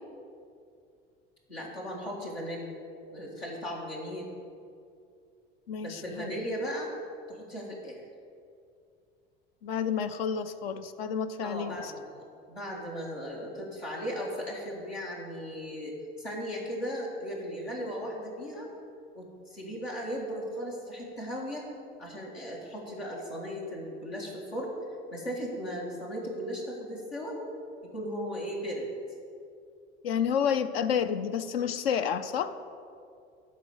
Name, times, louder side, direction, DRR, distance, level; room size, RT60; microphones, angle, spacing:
voice 1, 1.5-2.7 3.1-4.3 5.8-6.9 7.3-8.0 11.4-18.7 19.1-21.7 22.0-24.7 25.1-27.4 27.9-28.9, equal, 90° left, -4 dB, 1.9 m, -37 dB
voice 2, 5.7-6.4 9.6-11.9 30.0-32.5, left 7 dB, 75° left, 11 dB, 0.5 m, -30 dB
11.0 x 4.1 x 7.8 m, 2.4 s
figure-of-eight pair, 65°, 30 cm